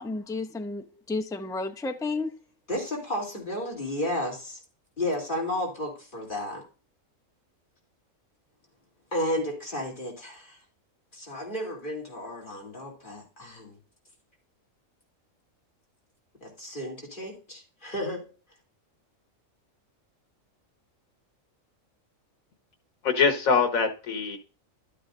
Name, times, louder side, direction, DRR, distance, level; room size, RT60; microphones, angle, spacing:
voice 1, 0.0-2.3, left 3 dB, 5° left, 0.4 m, -32 dB
voice 2, 2.7-4.6 5.0-6.6 9.1-10.6 11.1-13.8 16.4-18.3, left 1 dB, 35° left, 3.3 m, -32 dB
voice 3, 23.0-24.4, left 5 dB, 90° left, 1.8 m, -23 dB
12.0 x 8.6 x 2.6 m
omnidirectional pair, 1.4 m